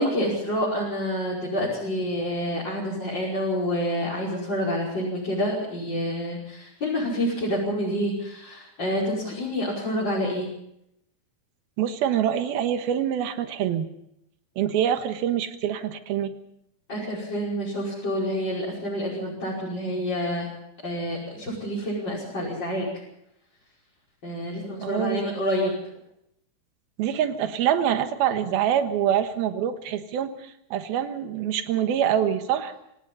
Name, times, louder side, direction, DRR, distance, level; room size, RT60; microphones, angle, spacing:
voice 1, 0.0-10.5 16.9-20.5 20.8-22.9 24.2-25.7, equal, 30° left, -5 dB, 6.1 m, -28 dB
voice 2, 11.8-13.9 14.6-16.3 24.8-25.2 27.0-32.7, right 10 dB, 90° right, 8 dB, 3.3 m, -25 dB
28.0 x 18.0 x 5.6 m, 0.80 s
omnidirectional pair, 4.2 m